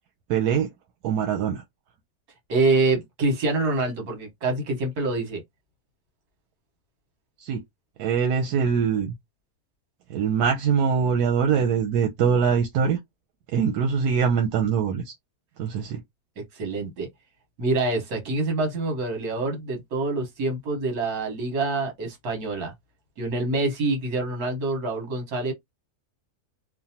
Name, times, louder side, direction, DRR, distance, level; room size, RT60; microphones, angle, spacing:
voice 1, 0.3-0.7 1.0-1.6 7.4-7.6 8.0-9.1 10.1-13.0 13.5-15.1 15.6-16.0, right 6 dB, 90° right, 1.2 m, -23 dB
voice 2, 2.5-5.4 16.4-17.1 17.6-22.7 23.2-25.5, right 3 dB, 75° right, 1.6 m, -26 dB
3.2 x 2.1 x 2.7 m
omnidirectional pair, 1.6 m